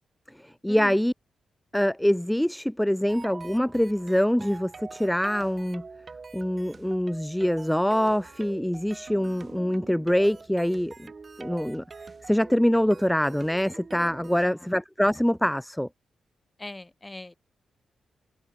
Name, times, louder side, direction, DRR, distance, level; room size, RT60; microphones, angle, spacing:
voice 1, 0.4-1.1 1.7-5.8 6.3-11.1 11.4-11.8 12.2-15.9, equal, 5° left, 0.3 m, -24 dB
sound 1, 3.1-14.5, right 4 dB, 45° right, 1.5 m, -45 dB
voice 2, 14.4-14.7 16.6-17.3, left 2 dB, 20° left, 3.1 m, -41 dB
cardioid pair, 60°, 0 cm